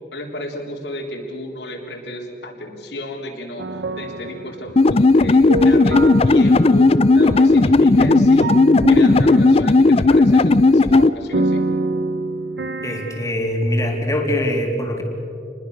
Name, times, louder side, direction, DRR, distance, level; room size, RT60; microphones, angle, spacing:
voice 1, 0.1-8.6 8.9-11.6, left 1 dB, 75° left, 0 dB, 3.8 m, -33 dB
sound 1, 3.6-5.0 5.3-10.1 10.5-10.6 10.9-13.3, right 2 dB, 75° right, 0.9 m, -26 dB
sound 2, 4.8-11.1, left 3 dB, 35° left, 0.5 m, -14 dB
voice 2, 12.8-15.0, left 1 dB, 20° left, 1 dB, 3.3 m, -22 dB
28.0 x 21.0 x 6.7 m, 2.6 s
head